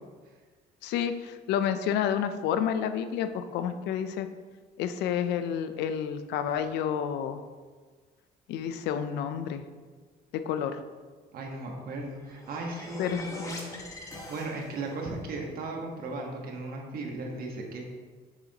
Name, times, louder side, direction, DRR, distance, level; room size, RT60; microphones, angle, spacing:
voice 1, 0.8-4.3 4.8-7.4 8.5-9.6 10.3-10.8 13.0-13.5, left 8 dB, 85° left, 10 dB, 0.5 m, -30 dB
voice 2, 11.3-17.8, right 2 dB, 60° right, 1 dB, 1.4 m, -37 dB
sound 1, 12.0-15.0, left 2 dB, 20° left, 1.2 m, -43 dB
6.9 x 6.7 x 2.9 m, 1.5 s
cardioid pair, 110°, 17 cm